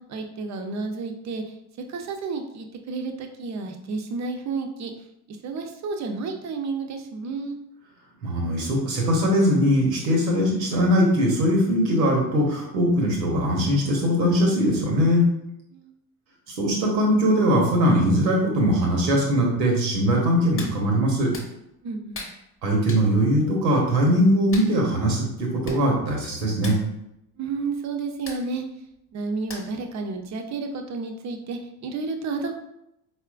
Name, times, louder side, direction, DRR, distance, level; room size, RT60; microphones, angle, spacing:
voice 1, 0.1-1.5 1.9-4.9 5.3-7.6 15.7-15.9 21.8-22.3 27.4-28.6 29.1-32.5, right 4 dB, 35° right, 4 dB, 0.6 m, -31 dB
voice 2, 8.2-15.3 16.5-21.3 22.6-26.7, equal, 85° right, -1 dB, 1.0 m, -21 dB
Hands, 20.6-20.8 21.3-21.5 22.1-22.4 22.9-23.1 24.5-24.7 25.4-25.5 25.6-25.8 26.1-26.3 26.6-26.8 28.3-28.4 29.5-29.8 30.3-30.4, left 2 dB, 25° left, 0.9 m, -37 dB
4.2 x 2.4 x 2.4 m, 0.82 s
hypercardioid pair, 60°, 49 cm